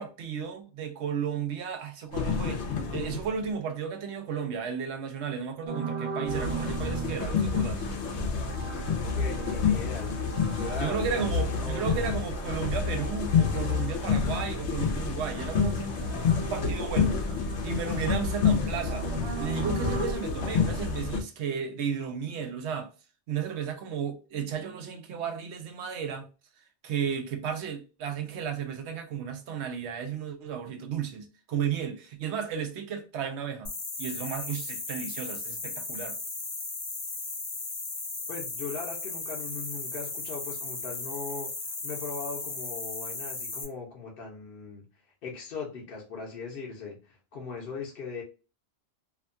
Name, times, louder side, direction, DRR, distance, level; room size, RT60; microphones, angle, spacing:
voice 1, 0.0-7.8 10.8-16.2 16.5-19.1 19.4-22.9 23.3-26.3 26.8-33.7 34.0-36.2, right 7 dB, 80° right, 0.9 m, -34 dB
sound 1, 2.1-3.5 6.3-21.2, left 5 dB, 90° left, 1.0 m, -29 dB
sound 2, 5.7-14.2 14.5-20.1, right 4 dB, 40° right, 0.5 m, -39 dB
voice 2, 9.0-11.9 38.3-44.9 45.2-48.2, left 4 dB, 60° left, 1.0 m, -39 dB
sound 3, 33.6-43.6, left 3 dB, 35° left, 0.5 m, -36 dB
2.8 x 2.2 x 2.5 m
omnidirectional pair, 1.1 m